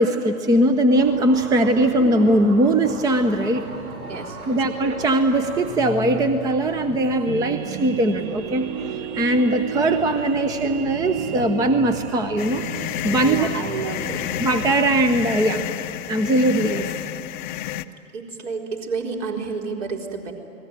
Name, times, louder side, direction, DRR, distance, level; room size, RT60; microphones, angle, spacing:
voice 1, 0.0-3.6 4.5-8.6 9.1-12.6 13.0-13.5 14.4-15.6 16.1-16.9, right 1 dB, 10° right, 9 dB, 0.7 m, -20 dB
sound 1, 1.0-15.3, right 1 dB, 75° right, 2.9 m, -37 dB
voice 2, 4.1-4.6 13.1-14.3 18.1-20.3, right 4 dB, 55° right, 1 dB, 4.5 m, -30 dB
sound 2, 7.2-14.7, right 6 dB, 25° right, 1.2 m, -33 dB
sound 3, 12.4-17.8, left 13 dB, 35° left, 0.7 m, -30 dB
29.5 x 20.0 x 9.4 m, 2.8 s
figure-of-eight pair, 115°, 43 cm